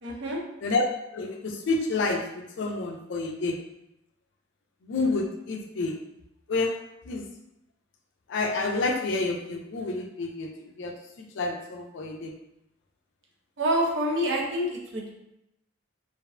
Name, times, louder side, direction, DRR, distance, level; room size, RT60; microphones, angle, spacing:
voice 1, 0.0-0.4 13.6-15.1, equal, 60° right, -1 dB, 0.5 m, -27 dB
voice 2, 1.1-2.3 2.6-3.6 4.8-6.0 6.5-6.7 7.1-7.2 8.3-10.9 11.2-12.3, left 3 dB, 65° left, 2 dB, 0.3 m, -29 dB
2.5 x 2.1 x 2.4 m, 0.84 s
head